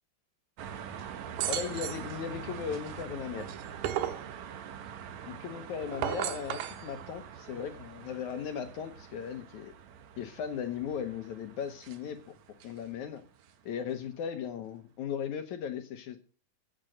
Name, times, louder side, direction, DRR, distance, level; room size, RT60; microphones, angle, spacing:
sound 1, 0.6-14.0, right 8 dB, 60° right, 2.1 m, -45 dB
sound 2, 1.4-2.1 3.4-4.3 5.8-6.8, right 11 dB, 90° right, 2.9 m, -33 dB
voice 1, 1.5-3.5 5.2-9.7 10.2-12.2 12.6-13.2 13.6-16.2, left 8 dB, 65° left, 8 dB, 2.1 m, -37 dB
14.5 x 9.0 x 6.4 m, 0.40 s
omnidirectional pair, 4.2 m